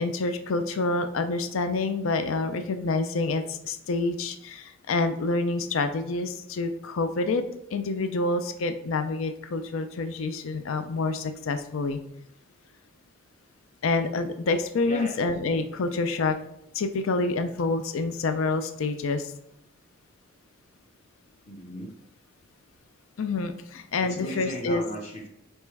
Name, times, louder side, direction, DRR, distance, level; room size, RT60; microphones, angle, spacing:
voice 1, 0.0-7.4 7.7-12.0 13.8-16.4 16.7-19.3 23.2-24.8, left 3 dB, 85° left, 9 dB, 0.5 m, -27 dB
voice 2, 14.9-15.2 15.8-16.0 21.5-21.9 24.0-25.3, equal, 30° left, 1 dB, 0.8 m, -36 dB
5.3 x 4.3 x 4.6 m, 0.78 s
head